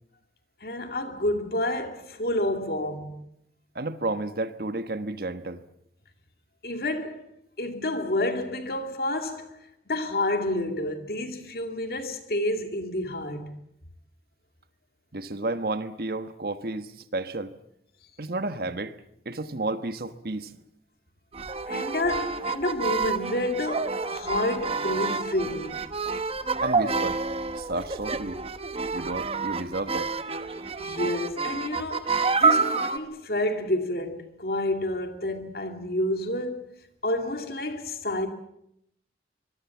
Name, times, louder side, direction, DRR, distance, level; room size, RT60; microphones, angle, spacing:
voice 1, 0.6-3.2 6.6-7.3 7.6-9.6 9.9-13.6 21.7-25.8 30.8-36.7 37.0-38.3, left 1 dB, 60° left, 2.5 m, -29 dB
voice 2, 3.7-5.6 15.1-17.5 18.2-19.0 19.2-20.5 26.6-27.2 27.6-28.4 28.9-30.2, right 2 dB, 60° right, 1.3 m, -31 dB
sound 1, 21.3-33.0, right 4 dB, 35° right, 1.0 m, -28 dB
24.5 x 22.0 x 7.2 m
head